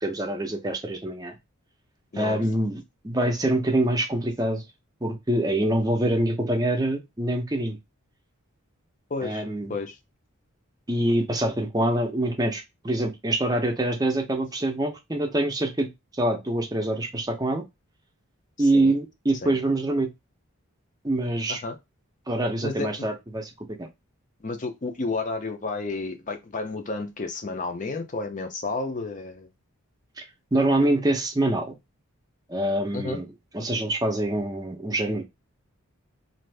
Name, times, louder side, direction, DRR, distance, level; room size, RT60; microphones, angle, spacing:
voice 1, 0.0-1.4 2.1-4.6 5.0-7.8 9.2-9.7 10.9-15.9 16.2-17.6 18.6-20.1 21.0-21.6 22.3-23.5 23.8-23.9 30.2-30.3 30.5-31.7 32.5-33.3 33.5-35.2, right 1 dB, 15° right, 0.6 m, -25 dB
voice 2, 9.1-9.4 9.7-10.0 18.6-19.0 19.4-19.5 21.5-21.8 22.6-22.9 24.4-29.5 32.9-33.2, left 3 dB, 35° left, 0.5 m, -31 dB
2.6 x 2.5 x 3.3 m
head